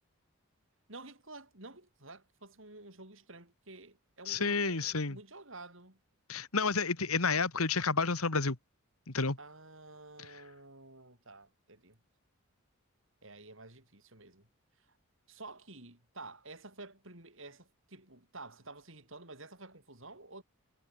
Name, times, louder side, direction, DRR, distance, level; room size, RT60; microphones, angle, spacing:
voice 1, 0.9-6.0 9.4-12.0 13.2-14.5 15.3-20.4, right 2 dB, 60° right, 6.2 m, -51 dB
voice 2, 4.3-5.2 6.3-8.6 9.1-9.4, left 4 dB, 80° left, 2.2 m, -30 dB
head